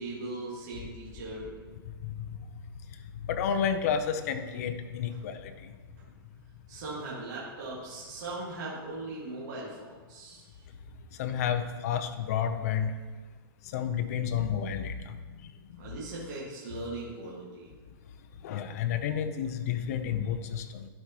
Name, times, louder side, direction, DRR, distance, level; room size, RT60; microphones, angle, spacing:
voice 1, 0.0-1.6 6.7-10.5 15.8-17.7, right 2 dB, 50° right, -6 dB, 1.8 m, -39 dB
voice 2, 3.3-5.7 11.2-12.9 13.7-15.2 18.4-20.9, left 8 dB, 40° left, 7 dB, 0.6 m, -30 dB
12.0 x 4.7 x 2.9 m, 1.4 s
hypercardioid pair, 165°, 12 cm